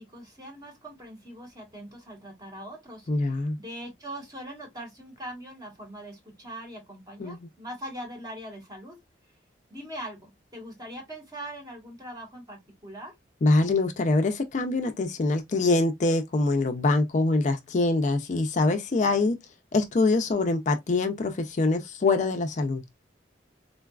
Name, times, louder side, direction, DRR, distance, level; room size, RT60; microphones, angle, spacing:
voice 1, 0.0-9.0 9.7-13.1, right 1 dB, 20° right, 1.2 m, -41 dB
voice 2, 3.1-3.6 7.2-7.4 13.4-19.4 19.7-22.8, left 2 dB, 40° left, 0.4 m, -24 dB
3.8 x 2.3 x 2.2 m
head